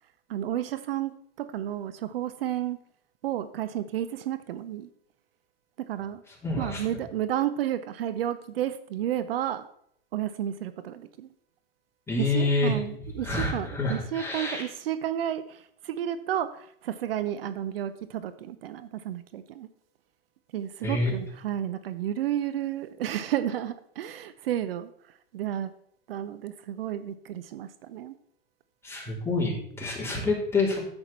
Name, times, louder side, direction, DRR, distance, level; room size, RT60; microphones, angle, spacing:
voice 1, 0.3-2.8 3.2-4.9 5.8-6.2 6.6-9.7 10.1-11.3 12.2-19.7 20.5-24.9 25.3-25.7 26.1-28.2, right 11 dB, 65° right, 13 dB, 0.6 m, -32 dB
voice 2, 6.4-6.8 12.1-12.8 13.2-14.6 20.8-21.1 28.8-30.8, left 3 dB, 10° left, -4 dB, 3.6 m, -27 dB
9.6 x 7.8 x 4.2 m, 0.70 s
hypercardioid pair, 110°, 31 cm